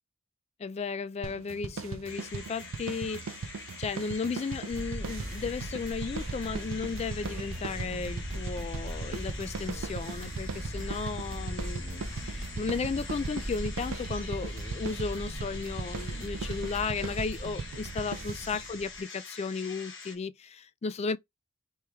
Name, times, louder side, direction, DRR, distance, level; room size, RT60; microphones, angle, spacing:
voice 1, 0.6-21.2, left 4 dB, 30° left, 0.3 m, -35 dB
sound 1, 1.2-18.7, right 5 dB, 80° right, 0.4 m, -40 dB
sound 2, 2.1-20.2, left 4 dB, 65° left, 1.4 m, -46 dB
sound 3, 4.7-19.0, right 1 dB, 30° right, 1.4 m, -39 dB
4.5 x 3.0 x 3.4 m
head